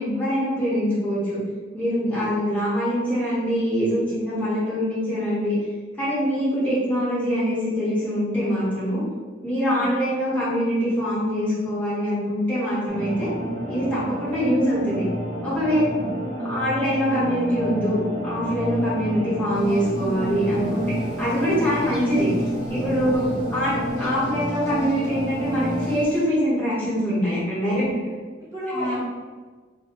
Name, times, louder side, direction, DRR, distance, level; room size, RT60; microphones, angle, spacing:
voice 1, 0.0-1.4 1.7-5.6 6.0-9.0 9.4-13.3 13.7-15.0 15.4-15.8 16.4-18.0 18.2-22.3 22.7-23.2 23.5-27.8 28.7-29.0, equal, 10° left, -11 dB, 1.1 m, -24 dB
sound 1, 12.9-26.0, right 1 dB, 40° right, 0.4 m, -29 dB
voice 2, 14.0-14.5 15.7-16.2 22.9-23.4 27.7-28.0 28.4-29.0, equal, 15° right, -8 dB, 0.9 m, -35 dB
sound 2, 19.5-26.2, left 2 dB, 65° left, 0.8 m, -40 dB
2.6 x 2.2 x 2.9 m, 1.4 s
head